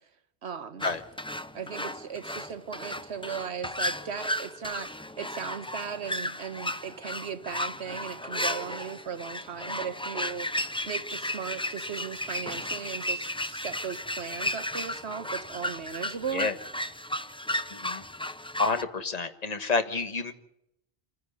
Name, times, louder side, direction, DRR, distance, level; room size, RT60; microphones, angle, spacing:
voice 1, 0.4-0.9 1.5-4.9 5.2-10.5 10.9-16.5, right 7 dB, 85° right, 1.4 m, -37 dB
sound 1, 0.8-18.8, left 1 dB, 5° left, 0.5 m, -34 dB
voice 2, 17.7-18.0 18.6-20.3, left 4 dB, 40° left, 1.5 m, -29 dB
27.0 x 10.5 x 9.7 m
omnidirectional pair, 1.1 m